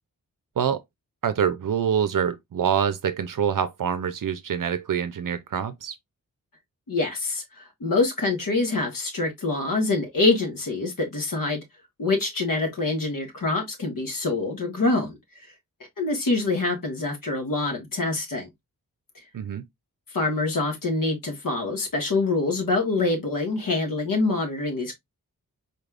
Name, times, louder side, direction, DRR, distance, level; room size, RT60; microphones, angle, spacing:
voice 1, 1.2-5.9 19.3-19.7, right 8 dB, 70° right, 0.5 m, -25 dB
voice 2, 6.9-7.4 7.8-11.6 12.0-15.2 16.0-18.5 20.1-24.9, left 3 dB, 70° left, 1.5 m, -25 dB
4.2 x 3.3 x 2.4 m
wide cardioid pair, 105°, 34 cm